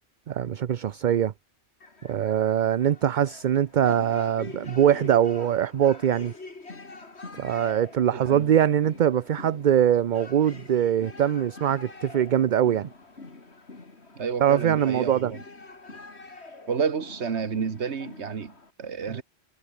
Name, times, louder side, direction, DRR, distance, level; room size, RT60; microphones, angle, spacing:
voice 1, 0.3-1.3 2.0-6.3 7.4-12.9 14.4-15.3 19.1-19.2, right 10 dB, 50° right, 0.7 m, -22 dB
sound 1, 1.8-18.7, left 3 dB, 75° left, 3.4 m, -45 dB
voice 2, 8.1-8.5 14.1-15.4 16.7-19.2, right 6 dB, 85° right, 1.7 m, -30 dB
omnidirectional pair, 1.1 m